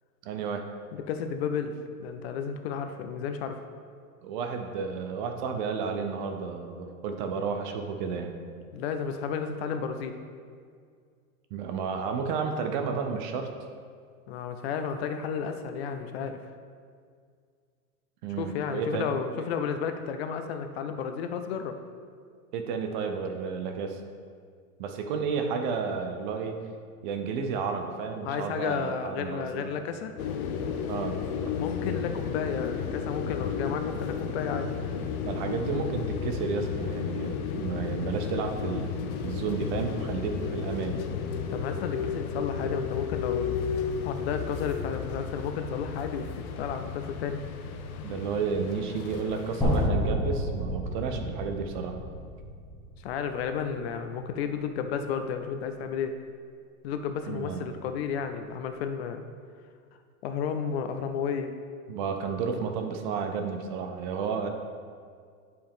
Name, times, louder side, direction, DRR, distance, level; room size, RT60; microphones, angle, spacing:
voice 1, 0.2-0.6 4.2-8.4 11.5-13.5 18.2-19.1 22.5-24.0 24.8-26.6 27.0-29.7 30.9-31.2 35.2-41.0 48.0-52.0 57.3-57.7 61.9-64.5, right 5 dB, 35° right, 5 dB, 0.5 m, -32 dB
voice 2, 0.9-1.7 2.0-3.6 8.7-10.2 14.3-16.5 18.3-21.8 28.2-30.1 31.6-34.7 41.5-43.7 44.0-47.4 53.0-56.2 56.8-59.2 60.2-61.5, left 6 dB, 45° left, 7 dB, 0.5 m, -32 dB
sound 1, 30.2-49.9, left 6 dB, 70° left, 0.8 m, -33 dB
sound 2, 49.6-53.6, equal, ahead, 1.4 m, -30 dB
10.5 x 4.7 x 3.5 m, 2.1 s
supercardioid pair, 155°, 44 cm